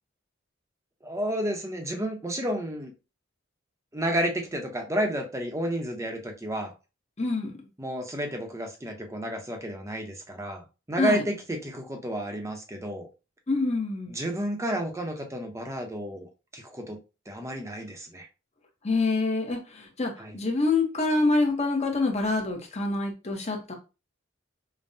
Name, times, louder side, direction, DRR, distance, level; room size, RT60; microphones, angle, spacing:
voice 1, 1.0-2.9 3.9-6.7 7.8-13.1 14.1-17.0 17.3-18.3 20.2-20.3, right 1 dB, 15° right, 0.7 m, -31 dB
voice 2, 7.2-7.6 11.0-11.2 13.5-14.2 18.8-23.7, left 3 dB, 35° left, 0.9 m, -26 dB
5.3 x 2.2 x 2.6 m
head